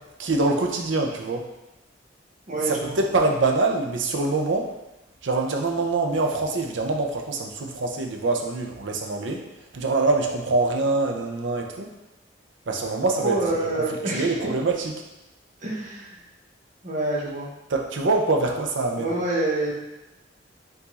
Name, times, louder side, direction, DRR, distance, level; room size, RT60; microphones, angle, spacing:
voice 1, 0.2-1.5 2.7-4.7 5.2-9.4 9.7-11.9 12.7-14.9 17.7-19.1, right 3 dB, 75° right, 3 dB, 0.6 m, -24 dB
voice 2, 2.5-3.0 13.2-14.3 15.6-16.2 16.8-17.5 19.0-19.7, right 2 dB, 40° right, -3 dB, 1.0 m, -26 dB
4.7 x 2.6 x 4.1 m, 0.99 s
head